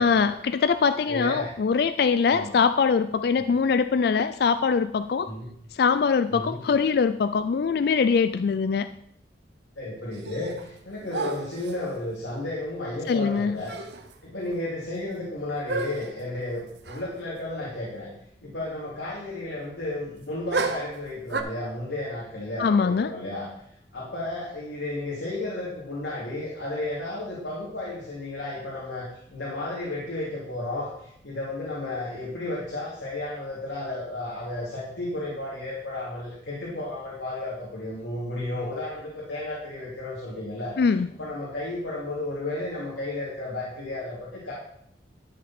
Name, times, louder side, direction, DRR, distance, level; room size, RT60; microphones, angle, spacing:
voice 1, 0.0-5.3 5.7-8.9 13.1-13.6 22.6-23.1 40.8-41.1, left 5 dB, 60° left, 12 dB, 0.4 m, -22 dB
voice 2, 1.0-1.5 2.3-2.5 3.4-3.5 5.2-5.5 6.3-6.6 9.8-13.7 14.2-18.1 18.4-23.5 23.9-40.8 41.2-44.5, left 2 dB, 85° left, -6 dB, 2.6 m, -33 dB
sound 1, 10.1-10.8 11.1-11.9 13.3-13.4 13.7-14.2 14.5-14.6 15.7-16.2 16.8-17.1 17.3-17.4 20.5-21.4, right 3 dB, 65° right, 0.8 m, -32 dB
11.5 x 6.7 x 4.3 m, 0.71 s
head